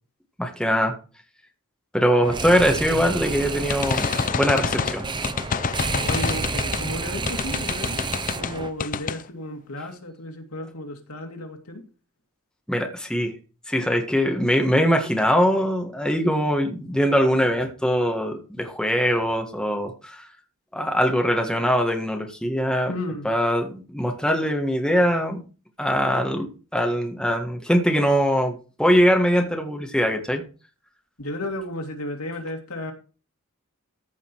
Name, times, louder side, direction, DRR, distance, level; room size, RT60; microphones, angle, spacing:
voice 1, 0.4-1.0 1.9-5.0 12.7-13.3 13.7-20.2 20.7-22.9 23.3-25.4 25.8-30.4, equal, 5° left, 3 dB, 1.6 m, -22 dB
sound 1, 2.2-8.7, right 3 dB, 20° right, 0.7 m, -30 dB
sound 2, 3.7-6.9 7.3-8.5 8.8-9.2, left 6 dB, 40° left, 0.5 m, -27 dB
voice 2, 6.0-11.8 22.9-23.3 31.2-32.9, left 1 dB, 80° left, 4 dB, 2.5 m, -33 dB
14.5 x 5.5 x 4.7 m, 0.34 s
head